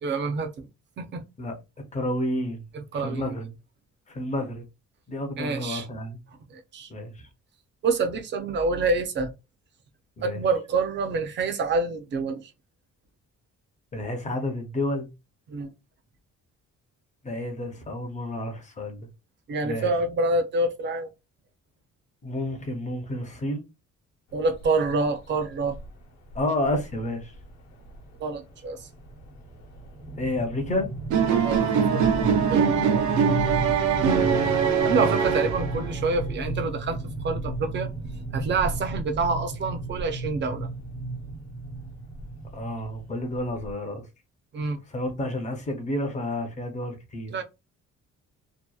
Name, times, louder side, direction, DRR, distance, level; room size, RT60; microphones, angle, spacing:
voice 1, 0.0-0.7 1.0-1.2 2.7-3.3 5.4-5.9 6.5-6.9 7.8-9.3 10.2-12.5 15.5-15.7 19.5-21.1 24.3-25.8 28.2-28.9 31.4-31.6 31.9-32.0 32.5-33.0 34.8-37.9 38.3-40.7 44.5-44.8 47.3-47.4, right 3 dB, 40° right, 0.5 m, -27 dB
voice 2, 1.9-2.6 2.9-3.5 4.1-4.7 5.1-6.2 6.9-7.3 10.2-10.4 13.9-15.1 17.2-19.1 19.6-19.9 22.2-23.6 26.3-27.3 30.2-30.9 34.2-34.9 42.5-44.0 44.9-47.4, left 1 dB, 25° left, 0.5 m, -30 dB
sound 1, 24.6-24.9 25.7-25.9 26.3-26.4 26.7-27.0 27.4-43.7, right 2 dB, 60° left, 0.9 m, -33 dB
sound 2, 31.1-36.0, right 7 dB, 85° right, 0.5 m, -22 dB
2.7 x 2.1 x 2.2 m
cardioid pair, 165°, 29 cm